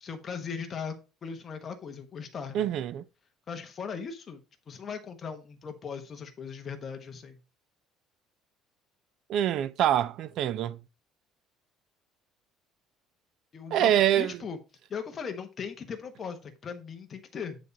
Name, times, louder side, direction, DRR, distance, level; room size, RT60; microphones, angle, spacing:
voice 1, 0.0-2.7 3.5-7.4 13.5-14.6 14.9-17.7, left 6 dB, 25° left, 1.2 m, -39 dB
voice 2, 2.5-3.0 9.3-10.8 13.7-14.3, right 11 dB, 50° right, 0.4 m, -25 dB
9.4 x 4.1 x 5.2 m
cardioid pair, 170°, 0 cm